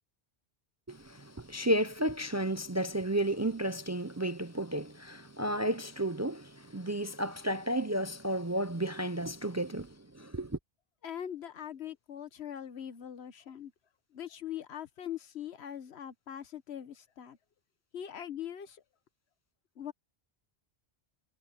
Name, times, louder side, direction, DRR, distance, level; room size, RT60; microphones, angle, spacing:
voice 1, 0.9-10.6, right 1 dB, 25° right, 0.4 m, -32 dB
voice 2, 11.0-13.7 14.1-17.4 17.9-18.8 19.8-19.9, left 10 dB, 90° left, 1.2 m, -42 dB
omnidirectional pair, 1.1 m